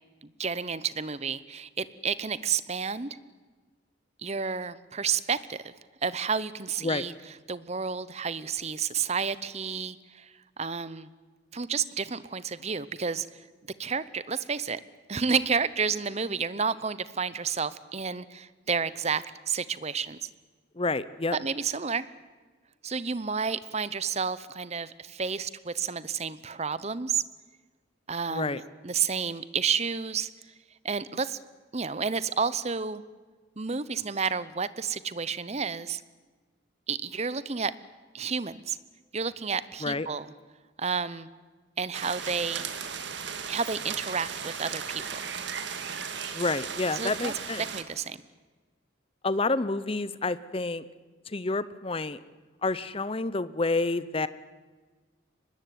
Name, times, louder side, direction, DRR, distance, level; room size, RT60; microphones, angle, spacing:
voice 1, 0.2-3.2 4.2-5.7 6.0-7.1 7.5-11.1 11.5-13.4 13.8-14.8 15.1-20.3 21.3-22.1 22.8-27.2 28.1-30.3 30.8-31.4 31.7-33.0 33.6-36.0 36.9-37.7 38.1-38.8 39.1-40.3 40.8-41.3 41.8-42.7 43.5-45.2 46.9-47.4 47.7-48.2, right 5 dB, 30° right, 16 dB, 0.8 m, -31 dB
voice 2, 20.8-21.4 28.3-28.6 39.8-40.1 46.3-47.6 49.2-50.8 51.3-52.2 52.6-54.3, left 3 dB, 30° left, 16 dB, 0.7 m, -29 dB
sound 1, 41.9-47.8, right 6 dB, 60° right, 1.9 m, -36 dB
24.0 x 20.5 x 9.3 m, 1.4 s
head